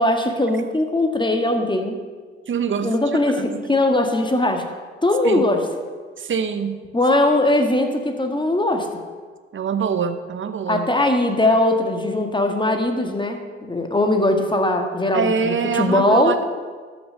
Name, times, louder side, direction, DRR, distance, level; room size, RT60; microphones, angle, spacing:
voice 1, 0.0-2.0 2.8-4.6 5.0-5.6 6.9-8.9 10.7-13.4 13.7-16.4, left 1 dB, 15° left, 5 dB, 1.7 m, -20 dB
voice 2, 2.5-3.5 5.2-5.4 6.2-6.8 9.5-10.9 15.1-16.4, right 6 dB, 40° right, 10 dB, 1.0 m, -24 dB
13.0 x 5.9 x 6.5 m, 1.5 s
figure-of-eight pair, 45°, 32 cm